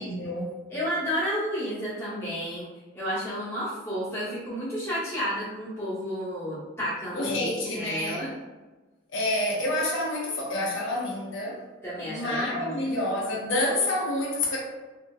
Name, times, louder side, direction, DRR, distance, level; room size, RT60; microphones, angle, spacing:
voice 1, 0.0-0.6 7.1-8.3 9.1-11.6 12.0-14.6, left 1 dB, 75° left, -2 dB, 0.7 m, -28 dB
voice 2, 0.7-2.7 2.9-8.3 11.8-13.0, equal, 15° left, -10 dB, 1.1 m, -31 dB
2.8 x 2.6 x 2.3 m, 1.2 s
head